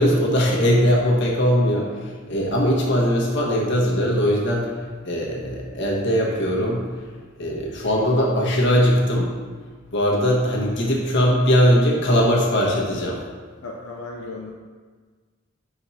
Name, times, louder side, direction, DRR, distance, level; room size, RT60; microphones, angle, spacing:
voice 1, 0.0-4.7 5.0-6.8 7.4-9.3 9.9-13.2, equal, 60° left, -3 dB, 1.4 m, -20 dB
voice 2, 13.6-14.5, left 3 dB, 85° left, -1 dB, 0.6 m, -35 dB
6.1 x 4.8 x 4.2 m, 1.5 s
head